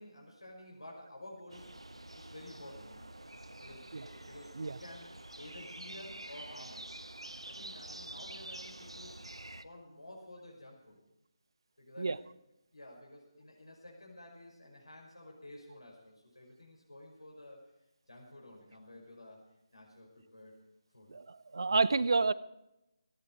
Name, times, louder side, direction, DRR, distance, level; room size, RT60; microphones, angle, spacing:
voice 1, 0.0-1.7 2.2-3.1 3.6-5.1 5.4-6.9 7.5-9.2 9.5-11.0 11.8-12.2 12.7-17.6 18.1-19.4 19.7-20.6 20.9-21.1, left 1 dB, 75° left, -2 dB, 5.5 m, -52 dB
sound 1, 1.5-9.6, right 1 dB, 80° right, 1.1 m, -48 dB
voice 2, 21.1-22.3, right 3 dB, 55° right, 18 dB, 0.8 m, -29 dB
17.5 x 14.5 x 4.7 m, 0.89 s
figure-of-eight pair, 155°, 3 cm